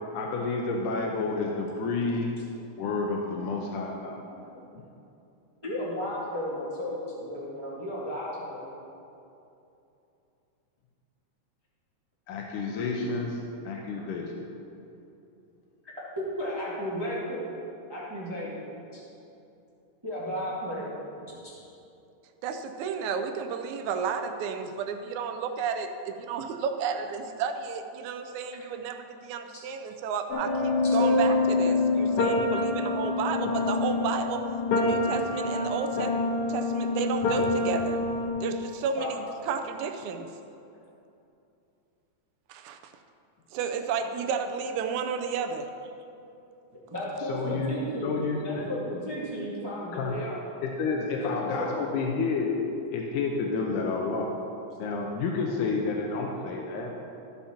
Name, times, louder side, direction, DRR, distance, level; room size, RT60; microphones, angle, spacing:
voice 1, 0.1-2.4 2.8-4.1 12.3-13.4 13.7-14.3 47.3-47.7 48.0-48.7 49.9-50.2 50.6-52.5 52.9-54.3 54.8-56.9, left 4 dB, 85° left, 0 dB, 2.3 m, -30 dB
voice 2, 5.6-8.7 13.9-14.0 15.8-17.5 17.9-19.0 20.0-21.0 38.9-39.1 46.7-50.4 51.1-51.8 56.0-56.1, left 1 dB, 15° right, -7 dB, 0.9 m, -34 dB
voice 3, 22.4-34.5 34.8-38.0 38.4-40.3 42.5-42.9 43.5-45.7, right 6 dB, 80° right, 6 dB, 1.9 m, -32 dB
sound 1, 30.3-38.3, left 3 dB, 70° left, 2.3 m, -26 dB
14.0 x 5.7 x 4.3 m, 2.8 s
omnidirectional pair, 3.5 m